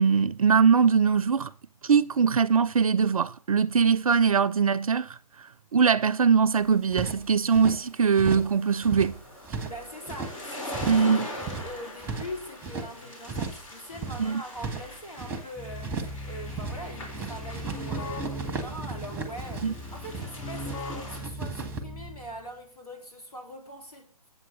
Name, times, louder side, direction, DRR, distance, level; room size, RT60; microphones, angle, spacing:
voice 1, 0.0-1.5 1.8-5.2 5.7-9.1 10.9-11.3 14.2-14.4 19.6-19.7, right 6 dB, 60° right, 0.4 m, -22 dB
sound 1, 6.6-7.8 8.1-8.6 8.8-10.4 10.7-11.1 11.4-12.9 13.2-13.7 13.9-15.4 15.8-16.2 16.5-16.9 17.1-20.8 21.0-21.8, right 4 dB, 10° right, 1.0 m, -36 dB
sound 2, 6.9-21.2, left 1 dB, 55° left, 3.7 m, -43 dB
voice 2, 9.6-24.1, equal, 75° left, 3.4 m, -42 dB
Keyboard (musical), 15.6-22.4, left 1 dB, 5° left, 2.2 m, -39 dB
8.3 x 7.8 x 5.2 m
figure-of-eight pair, 130°, 20 cm